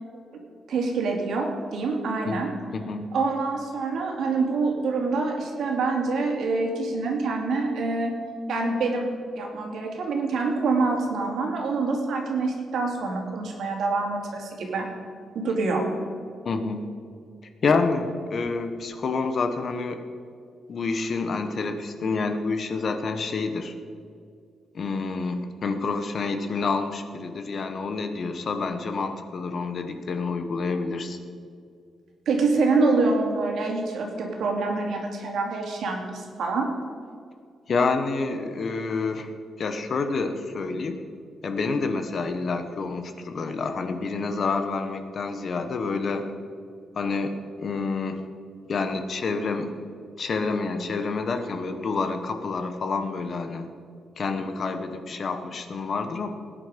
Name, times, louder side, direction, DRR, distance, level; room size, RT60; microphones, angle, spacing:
voice 1, 0.7-2.5 3.1-8.1 8.5-9.1 9.3-14.9 15.3-16.0 32.3-36.7, right 3 dB, 70° right, 1 dB, 2.9 m, -26 dB
voice 2, 2.7-3.1 16.4-16.8 17.6-20.0 20.7-23.7 24.7-31.2 37.7-39.3 39.6-41.0 41.4-46.3 46.9-48.2 48.7-49.8 50.2-53.7 54.2-56.3, left 4 dB, 45° left, 7 dB, 1.1 m, -28 dB
19.5 x 9.9 x 5.2 m, 2.3 s
wide cardioid pair, 165°, 0 cm